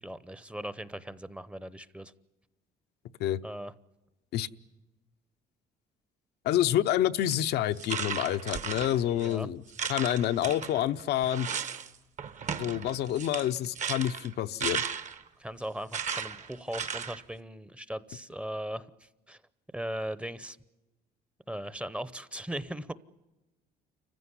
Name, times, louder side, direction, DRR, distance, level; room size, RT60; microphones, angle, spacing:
voice 1, 0.0-2.1 3.4-3.7 9.1-9.5 15.4-19.4 19.7-20.6 21.5-22.9, right 1 dB, 5° right, 16 dB, 0.8 m, -38 dB
voice 2, 6.4-9.6 9.9-11.5 12.6-14.8, left 12 dB, 75° left, 9 dB, 0.8 m, -28 dB
sound 1, 7.2-7.3 7.8-9.3 9.7-11.9 12.2-15.3 15.9-17.2, right 7 dB, 45° right, 1.2 m, -35 dB
28.0 x 15.5 x 9.8 m, 1.0 s
cardioid pair, 110°, 17 cm